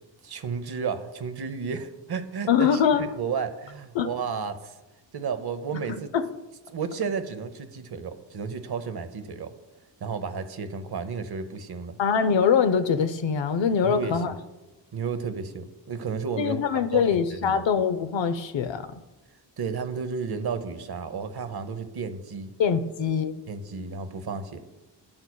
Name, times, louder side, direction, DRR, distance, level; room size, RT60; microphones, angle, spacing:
voice 1, 0.2-4.8 5.1-6.1 6.7-9.5 10.0-12.0 13.8-14.2 14.9-16.6 16.9-17.0 17.4-17.6 19.6-22.5 23.5-24.6, right 5 dB, 60° right, 10 dB, 0.8 m, -32 dB
voice 2, 2.5-3.1 3.9-4.1 6.1-6.3 12.0-14.3 16.4-18.9 22.6-23.4, left 7 dB, 90° left, 10 dB, 0.7 m, -23 dB
12.0 x 8.7 x 2.3 m, 1.1 s
wide cardioid pair, 105°, 43 cm